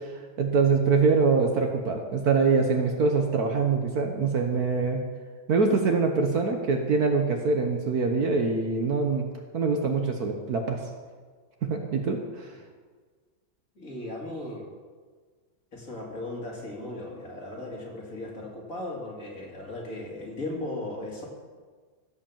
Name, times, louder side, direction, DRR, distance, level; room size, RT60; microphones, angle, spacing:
voice 1, 0.4-5.0 5.5-9.3 9.5-10.8 11.6-12.5, right 4 dB, 55° right, 3 dB, 1.4 m, -24 dB
voice 2, 13.8-14.7 15.7-21.3, left 1 dB, 45° left, -2 dB, 2.8 m, -37 dB
16.0 x 5.4 x 7.2 m, 1.5 s
omnidirectional pair, 2.1 m